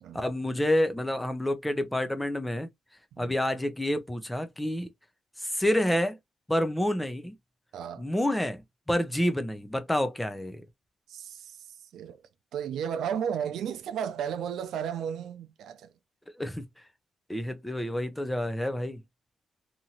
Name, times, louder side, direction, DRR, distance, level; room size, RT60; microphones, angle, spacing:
voice 1, 0.1-2.7 3.2-4.9 5.4-6.2 6.5-7.4 8.0-8.6 8.9-10.6 16.3-16.6 17.3-19.0, left 1 dB, 5° left, 0.5 m, -28 dB
voice 2, 7.7-8.1 11.1-11.5 11.9-12.2 12.5-15.9, right 8 dB, 90° right, 0.4 m, -33 dB
2.8 x 2.5 x 2.8 m
cardioid pair, 135°, 0 cm